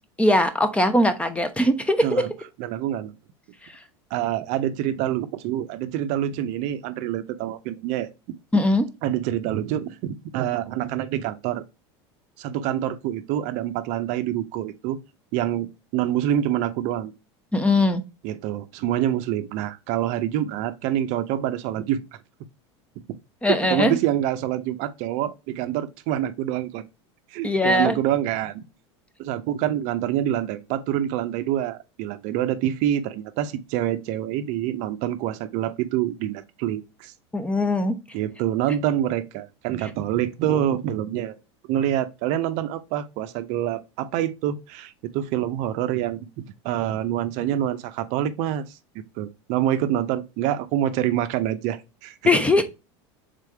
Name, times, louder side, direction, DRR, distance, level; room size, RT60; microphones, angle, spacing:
voice 1, 0.2-2.2 8.5-8.9 17.5-18.0 23.4-24.0 27.4-28.0 37.3-38.0 52.3-52.6, left 1 dB, 10° left, 0.6 m, -20 dB
voice 2, 2.6-3.1 4.1-8.1 9.0-11.6 12.4-15.0 15.3-17.1 18.2-22.0 23.5-26.9 27.3-28.6 29.2-37.1 38.1-41.3 41.7-46.3 46.6-48.8 49.2-52.2, right 11 dB, 55° right, 0.6 m, -26 dB
3.7 x 3.4 x 3.2 m
supercardioid pair, 115°, 15 cm